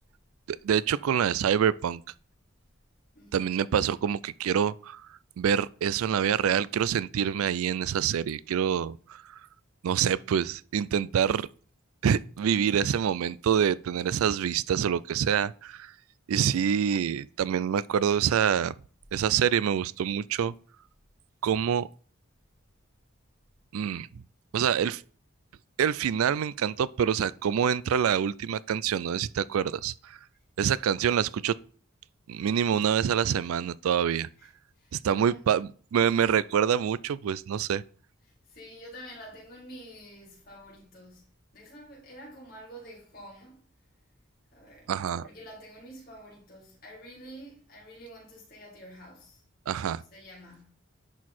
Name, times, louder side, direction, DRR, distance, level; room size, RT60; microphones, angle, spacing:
voice 1, 0.5-2.0 3.3-5.0 5.4-9.2 9.8-11.5 12.0-15.9 16.3-18.7 19.1-20.5 21.4-21.9 23.7-24.1 24.5-25.0 25.8-30.1 30.6-31.6 32.3-34.3 34.9-37.8 44.9-45.2 49.7-50.0, right 8 dB, 80° right, 0.3 m, -26 dB
voice 2, 3.1-3.5 34.4-35.4 38.2-43.6 44.5-44.9 45.2-49.5 50.1-50.7, equal, 40° left, 3.4 m, -48 dB
10.5 x 4.5 x 4.3 m
head